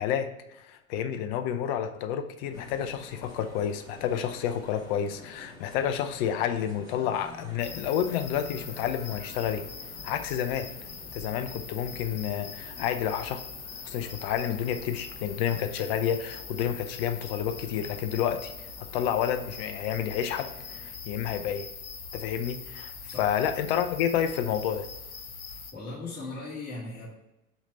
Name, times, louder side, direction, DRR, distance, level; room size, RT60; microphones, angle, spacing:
voice 1, 0.0-9.6 10.0-10.7 11.1-13.4 13.8-18.5 18.8-21.7 22.1-22.9 23.2-24.9, left 9 dB, 45° left, 8 dB, 0.7 m, -30 dB
sound 1, 2.5-20.9, left 1 dB, 10° right, 2.6 m, -50 dB
sound 2, 7.6-25.7, left 5 dB, 80° left, 1.0 m, -42 dB
voice 2, 23.1-23.6 25.5-27.1, left 2 dB, 20° left, -10 dB, 2.3 m, -39 dB
5.8 x 4.2 x 5.5 m, 0.95 s
figure-of-eight pair, 90°, 42 cm